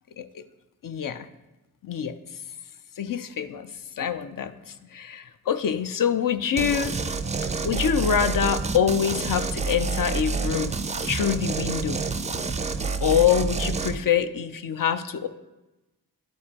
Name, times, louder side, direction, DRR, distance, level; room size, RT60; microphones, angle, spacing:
voice 1, 0.8-1.3 1.8-2.2 3.0-6.9 7.6-10.7 11.1-12.0 13.0-15.3, left 8 dB, 65° left, 10 dB, 0.5 m, -25 dB
sound 1, 6.6-14.0, right 4 dB, 20° right, 0.3 m, -28 dB
11.0 x 4.8 x 2.8 m, 1.0 s
cardioid pair, 60°, 36 cm